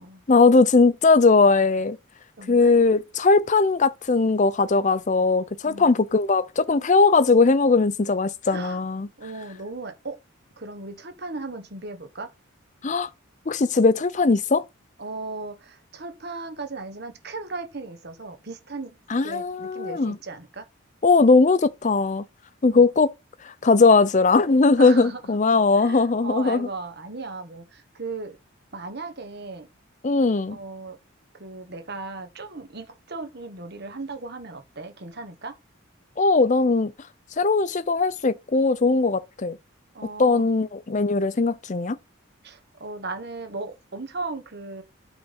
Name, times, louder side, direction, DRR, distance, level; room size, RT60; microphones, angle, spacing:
voice 1, 0.3-2.0 2.5-9.1 12.8-13.1 13.5-14.6 19.1-20.2 21.0-22.2 22.6-23.1 23.4-26.7 30.0-30.6 36.2-36.9 37.4-39.6 40.2-42.0, left 3 dB, 35° left, 0.5 m, -19 dB
voice 2, 2.4-2.8 5.6-5.9 8.5-8.8 9.2-10.2 10.6-12.3 15.0-18.9 19.2-20.7 22.7-22.8 24.8-25.4 25.8-28.4 28.7-29.7 30.5-31.0 31.3-35.5 39.9-40.5 42.4-44.8, right 3 dB, 50° right, 1.3 m, -36 dB
8.7 x 4.1 x 5.3 m
head